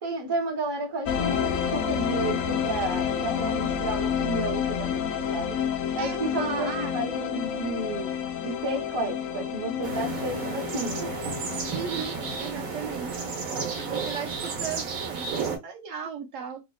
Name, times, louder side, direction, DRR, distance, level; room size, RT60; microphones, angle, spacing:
voice 1, 0.0-5.6 5.9-8.1 8.4-11.1, right 1 dB, 30° right, 0.4 m, -32 dB
sound 1, 1.1-14.0, left 8 dB, 65° left, 0.7 m, -30 dB
voice 2, 6.0-6.9 11.7-13.2 13.8-16.6, right 7 dB, 70° right, 1.0 m, -36 dB
sound 2, 9.8-15.6, right 5 dB, 85° right, 1.3 m, -32 dB
3.6 x 2.1 x 2.2 m
omnidirectional pair, 1.5 m